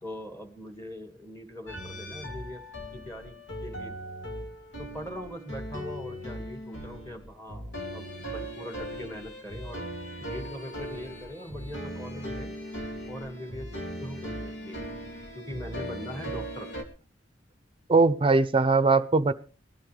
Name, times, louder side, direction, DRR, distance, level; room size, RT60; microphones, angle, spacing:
voice 1, 0.0-2.6 2.9-3.9 4.8-9.9 10.3-12.6 13.1-13.7 14.0-14.8 15.4-16.7, left 1 dB, 15° left, 6 dB, 1.8 m, -41 dB
sound 1, 1.7-16.8, equal, 80° left, 2.5 m, -38 dB
voice 2, 17.9-19.3, right 3 dB, 30° right, 15 dB, 0.6 m, -21 dB
20.5 x 13.0 x 3.3 m, 0.35 s
head